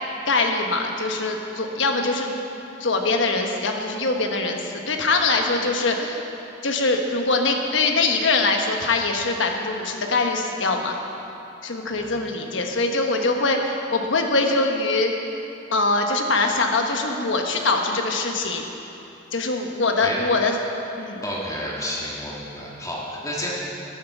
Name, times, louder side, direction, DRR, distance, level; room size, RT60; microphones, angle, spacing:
voice 1, 0.3-2.3 2.8-6.2 6.6-10.9 11.6-15.1 15.7-18.6 19.3-20.5 21.0-21.2, left 3 dB, 70° left, 3 dB, 1.2 m, -23 dB
voice 2, 21.2-23.5, left 1 dB, 20° left, -5 dB, 1.9 m, -31 dB
12.5 x 7.5 x 7.2 m, 2.9 s
head